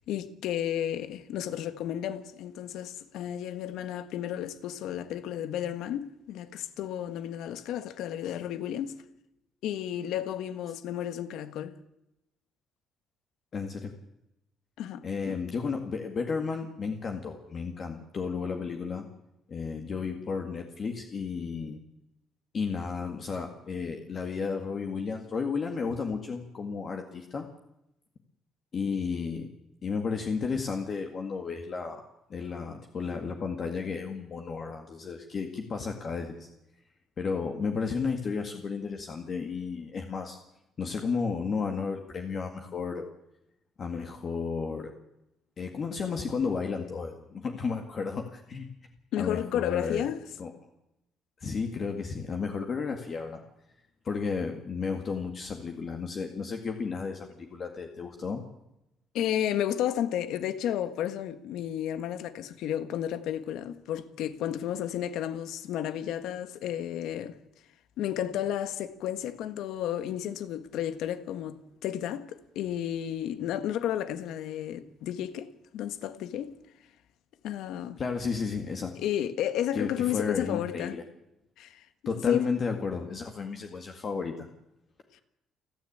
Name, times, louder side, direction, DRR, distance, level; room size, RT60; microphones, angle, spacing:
voice 1, 0.1-9.0 9.6-11.8 14.8-15.4 49.1-50.2 59.1-67.4 68.0-76.6 77.4-78.0 79.0-81.0 81.6-81.8 82.3-82.5, left 11 dB, 75° left, 1.6 m, -32 dB
voice 2, 13.5-13.9 15.0-19.1 19.5-21.8 22.5-27.5 28.7-29.5 29.8-32.0 32.3-36.5 37.2-40.4 40.8-43.1 43.8-45.0 45.6-48.7 49.2-50.0 50.4-50.5 51.4-53.4 54.0-58.4 78.0-78.9 79.7-81.0 82.1-84.5, left 5 dB, 35° left, 1.9 m, -33 dB
29.5 x 10.5 x 8.8 m
cardioid pair, 160°, 0 cm